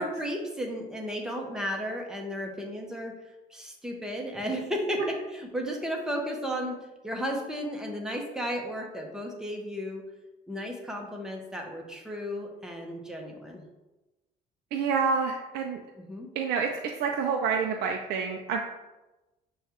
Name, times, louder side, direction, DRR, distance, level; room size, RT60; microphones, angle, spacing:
voice 1, 0.0-3.1 3.5-6.8 7.0-10.0 10.5-13.6 16.0-16.3, equal, 5° right, 0 dB, 0.8 m, -34 dB
voice 2, 14.7-15.8 16.4-16.7 17.0-18.6, right 5 dB, 75° right, 2 dB, 0.4 m, -28 dB
6.4 x 2.3 x 2.9 m, 1.1 s
cardioid pair, 110°, 17 cm